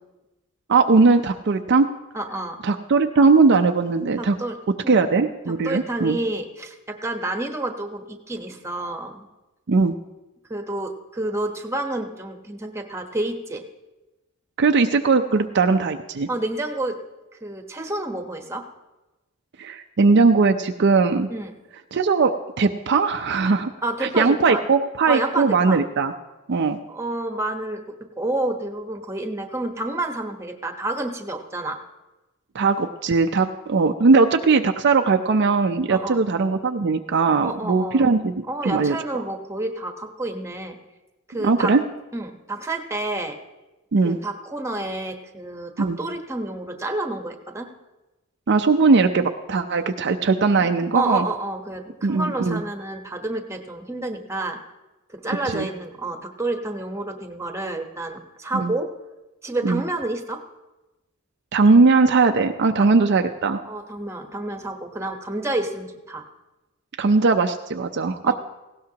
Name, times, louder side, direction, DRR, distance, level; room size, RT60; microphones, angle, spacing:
voice 1, 0.7-1.9 2.6-4.4 4.9-6.2 9.7-9.9 14.6-16.3 19.6-21.3 21.9-23.7 24.0-26.1 26.5-26.8 32.5-38.3 38.6-39.0 41.4-41.8 43.9-44.2 45.8-46.0 48.5-51.3 52.0-52.6 55.5-55.7 58.5-58.7 59.6-59.8 61.5-63.6 67.0-68.3, right 4 dB, 55° right, 6 dB, 0.5 m, -19 dB
voice 2, 2.1-2.6 4.2-4.6 4.8-4.9 5.5-9.3 10.5-13.6 16.3-17.0 17.4-18.6 21.3-21.6 23.8-24.6 25.1-25.8 26.9-27.8 28.2-31.8 35.9-36.2 37.4-38.1 38.5-40.8 41.3-41.7 42.1-43.4 44.0-47.7 50.6-54.6 55.1-58.9 59.4-60.4 62.8-62.9 63.6-66.2 68.2-68.3, right 2 dB, 15° right, 4 dB, 1.1 m, -29 dB
18.5 x 16.5 x 2.9 m, 1.0 s
head